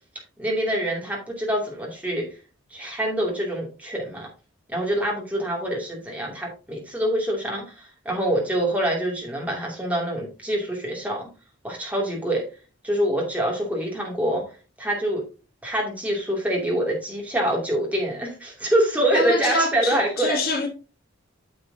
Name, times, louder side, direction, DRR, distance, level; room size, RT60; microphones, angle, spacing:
voice 1, 0.4-2.3 2.7-4.3 4.7-11.3 11.6-12.5 12.8-14.4 14.8-15.2 15.6-20.4, right 1 dB, 5° right, 2.6 m, -25 dB
voice 2, 19.1-20.7, left 2 dB, 45° left, 1.8 m, -25 dB
9.3 x 6.8 x 2.8 m
head